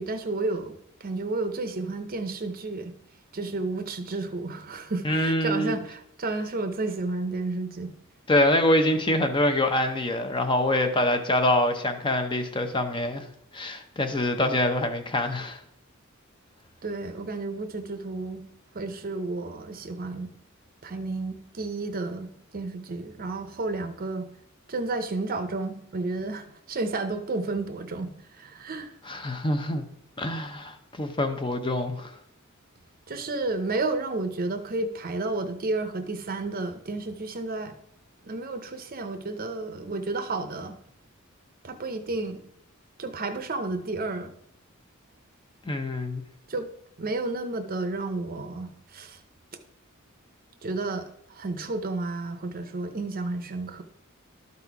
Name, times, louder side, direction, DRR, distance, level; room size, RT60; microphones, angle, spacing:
voice 1, 0.0-2.9 3.3-7.9 16.8-18.4 18.7-20.3 20.8-24.3 24.7-28.9 33.1-37.8 38.2-40.8 41.6-42.4 43.0-44.3 46.5-46.7 47.0-49.2 50.6-53.8, right 3 dB, 45° right, 8 dB, 0.7 m, -31 dB
voice 2, 5.0-5.8 8.3-13.3 13.5-15.6 29.0-29.8 30.2-32.1 45.7-46.2, left 1 dB, 25° left, 6 dB, 0.7 m, -25 dB
12.0 x 4.2 x 4.7 m, 0.72 s
head